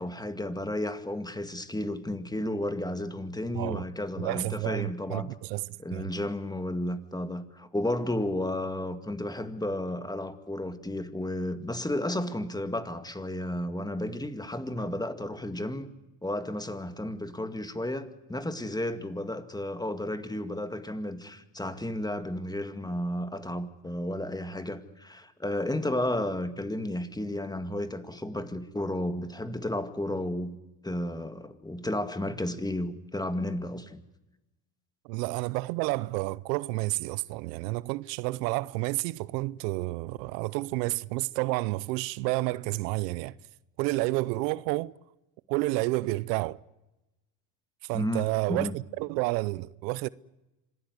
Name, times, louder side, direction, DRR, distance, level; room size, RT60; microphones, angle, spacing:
voice 1, 0.0-5.3 5.8-15.9 16.2-30.6 30.8-34.0 47.9-48.8, left 1 dB, 10° left, 2.1 m, -33 dB
voice 2, 4.2-6.1 35.0-43.3 43.8-44.9 45.5-46.6 47.8-50.1, right 21 dB, 85° right, 0.7 m, -30 dB
26.0 x 16.5 x 9.7 m
supercardioid pair, 85°, 48 cm